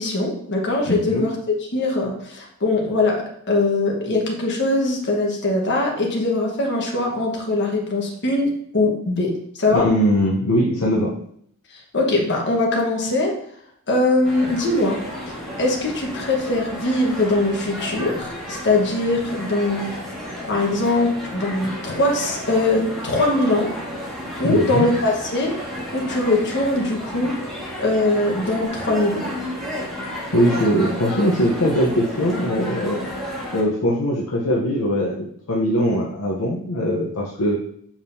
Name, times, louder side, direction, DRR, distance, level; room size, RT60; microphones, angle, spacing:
voice 1, 0.0-3.2 3.5-9.3 9.6-9.8 11.9-13.3 13.9-15.0 15.6-19.9 20.5-23.7 24.4-25.5 25.9-27.3 27.8-29.2, left 2 dB, 50° left, 0 dB, 1.3 m, -21 dB
voice 2, 0.9-1.3 9.7-11.1 24.4-24.9 30.3-33.0 33.5-37.6, equal, 70° left, -3 dB, 0.8 m, -21 dB
sound 1, 14.2-33.6, equal, ahead, 1.8 m, -32 dB
7.2 x 5.0 x 2.7 m, 0.66 s
head